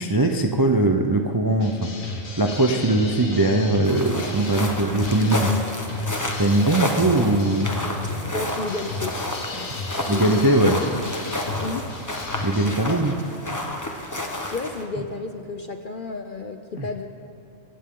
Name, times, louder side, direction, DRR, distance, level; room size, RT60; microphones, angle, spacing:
voice 1, 0.0-1.9 2.4-5.5 6.4-7.7 10.1-10.8 12.4-13.1 16.8-16.9, right 2 dB, 25° right, 4 dB, 0.4 m, -20 dB
sound 1, 1.6-12.7, left 2 dB, 65° left, 2.2 m, -33 dB
sound 2, 3.8-14.8, left 1 dB, 15° left, 1.0 m, -30 dB
voice 2, 8.3-9.2 10.1-10.9 11.6-11.9 12.8-13.0 14.5-17.1, left 3 dB, 50° left, 6 dB, 0.7 m, -32 dB
24.0 x 15.5 x 3.8 m, 2.6 s
omnidirectional pair, 1.5 m